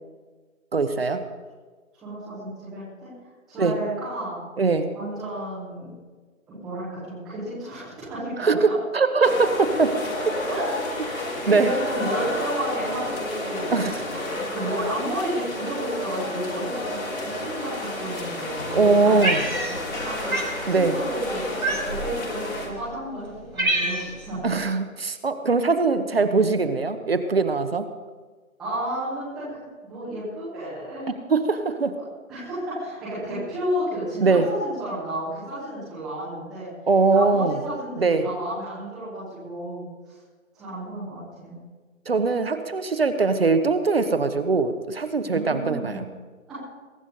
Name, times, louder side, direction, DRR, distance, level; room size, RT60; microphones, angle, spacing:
voice 1, 0.7-1.2 3.6-3.7 4.6-4.9 8.4-9.9 11.5-11.7 13.7-13.9 18.7-19.4 20.7-21.0 24.4-27.9 31.3-31.9 34.2-34.5 36.9-37.6 38.0-38.3 42.1-46.0, right 4 dB, 45° right, 9 dB, 1.0 m, -21 dB
voice 2, 2.0-3.1 3.5-4.4 4.9-5.9 6.5-8.5 10.5-10.7 11.0-13.7 14.1-19.4 19.9-24.4 28.6-29.6 29.9-31.2 32.3-36.7 37.1-40.1 40.5-41.5 45.2-46.0 46.5-46.6, right 1 dB, ahead, -12 dB, 0.9 m, -32 dB
sound 1, 9.2-22.7, left 2 dB, 75° left, 5.0 m, -31 dB
Cat, 19.2-20.0 20.3-20.6 21.6-22.1 22.8-22.9 23.3-24.3, right 2 dB, 85° right, 5.9 m, -26 dB
22.0 x 11.0 x 4.0 m, 1.4 s
figure-of-eight pair, 155°, 41 cm